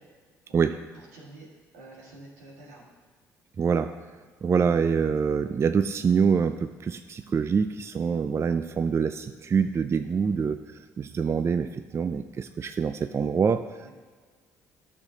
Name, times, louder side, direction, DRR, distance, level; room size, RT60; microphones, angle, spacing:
voice 1, 0.9-2.9 13.8-13.9, right 2 dB, 85° right, -3 dB, 1.7 m, -48 dB
voice 2, 3.6-3.9 4.4-10.6 11.0-13.9, right 6 dB, 35° right, 10 dB, 0.4 m, -25 dB
12.0 x 6.4 x 2.8 m, 1.5 s
hypercardioid pair, 55°, 8 cm